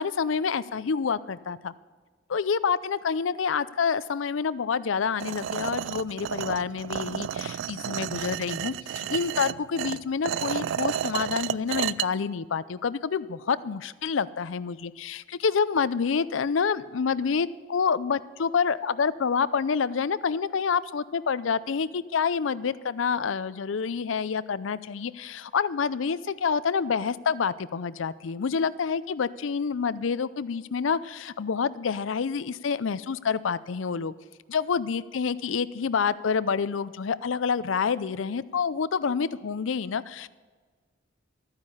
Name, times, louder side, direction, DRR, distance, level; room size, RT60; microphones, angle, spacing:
voice 1, 0.0-1.7 2.3-34.1 34.5-40.3, left 6 dB, 80° left, 17 dB, 0.5 m, -28 dB
sound 1, 5.2-12.1, right 9 dB, 70° right, 0.3 m, -31 dB
13.5 x 9.7 x 5.6 m, 1.4 s
head